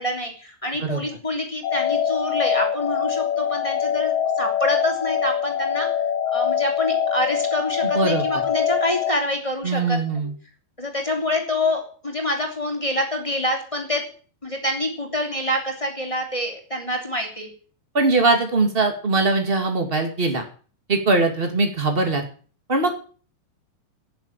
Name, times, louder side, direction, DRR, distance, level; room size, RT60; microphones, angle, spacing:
voice 1, 0.0-5.9 6.3-10.2 10.8-14.0 14.4-17.5, left 1 dB, 10° left, 2 dB, 2.4 m, -26 dB
sound 1, 1.6-9.1, left 8 dB, 70° left, 1.9 m, -24 dB
voice 2, 7.9-8.4 9.6-10.3 17.9-20.4 20.9-22.2 22.7-22.9, right 3 dB, 35° right, 4 dB, 0.9 m, -21 dB
17.5 x 7.2 x 7.5 m, 0.41 s
omnidirectional pair, 5.2 m